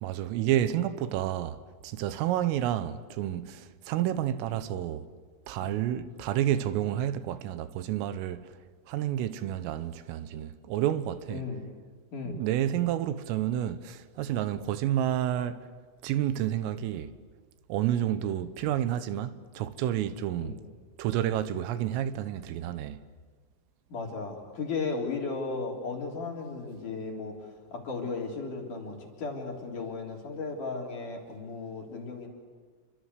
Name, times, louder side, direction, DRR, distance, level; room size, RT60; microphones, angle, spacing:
voice 1, 0.0-1.6 1.8-5.1 5.5-8.5 8.9-11.5 12.3-15.6 16.0-17.1 17.7-20.6 21.0-23.0, right 11 dB, 85° right, 3.6 m, -30 dB
voice 2, 11.3-11.6 12.1-12.4 20.4-20.6 23.9-27.3 27.7-32.3, left 4 dB, 45° left, 4.4 m, -35 dB
29.5 x 24.5 x 8.2 m
omnidirectional pair, 5.9 m